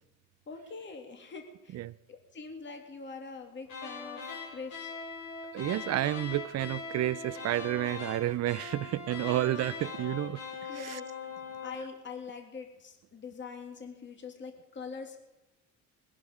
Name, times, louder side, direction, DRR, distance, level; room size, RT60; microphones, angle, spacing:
voice 1, 0.5-1.8 2.1-4.2 4.5-4.9 10.7-11.1 11.6-15.2, left 5 dB, 35° left, 2.3 m, -43 dB
sound 1, 3.6-11.9, left 5 dB, 70° left, 5.6 m, -41 dB
voice 2, 5.5-11.0, right 14 dB, 55° right, 0.5 m, -31 dB
21.0 x 10.5 x 5.0 m
cardioid pair, 105°, 32 cm